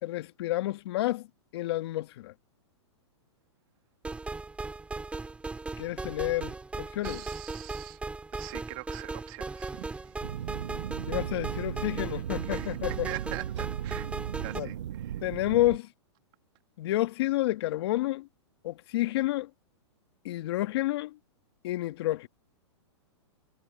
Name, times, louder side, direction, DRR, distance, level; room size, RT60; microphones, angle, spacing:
voice 1, 0.0-1.3 1.5-2.3 5.8-7.2 11.1-13.1 14.5-14.7 15.2-15.9 16.8-18.3 18.6-19.5 20.2-21.2 21.6-22.3, left 16 dB, 60° left, 1.8 m, -30 dB
sound 1, 4.0-14.6, right 3 dB, 10° right, 2.7 m, -38 dB
voice 2, 7.0-8.0 8.3-10.2 12.4-14.1 14.4-15.2, right 25 dB, 45° right, 2.4 m, -43 dB
sound 2, 10.2-15.8, right 11 dB, 75° right, 0.8 m, -36 dB
hypercardioid pair, 135°, 15 cm